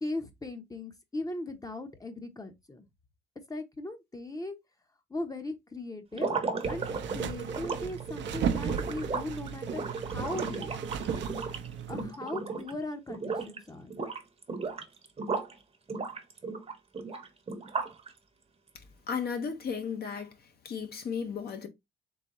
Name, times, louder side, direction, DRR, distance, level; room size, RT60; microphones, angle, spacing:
voice 1, 0.0-2.8 3.5-4.5 5.1-6.4 6.7-6.9 7.1-10.8 11.9-13.9, left 2 dB, 20° left, 0.8 m, -38 dB
sound 1, 6.1-12.8 13.1-13.6 13.9-15.5 15.9-18.1, right 4 dB, 30° right, 0.9 m, -35 dB
sound 2, 6.6-12.1, right 7 dB, 65° right, 0.6 m, -36 dB
voice 2, 19.1-20.3 20.6-21.7, left 6 dB, 50° left, 0.9 m, -34 dB
4.0 x 3.3 x 3.0 m
cardioid pair, 90°, 20 cm